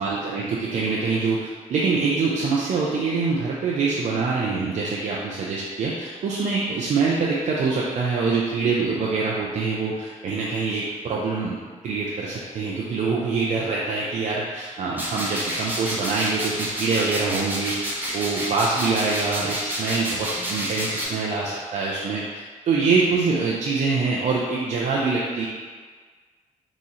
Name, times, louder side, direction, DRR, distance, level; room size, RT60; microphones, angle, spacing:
voice 1, 0.0-22.2 22.7-25.5, right 4 dB, 65° right, -5 dB, 0.6 m, -25 dB
sound 1, 15.0-21.0, equal, 15° right, 0.8 m, -29 dB
3.7 x 3.0 x 4.0 m, 1.5 s
cardioid pair, 125°, 13 cm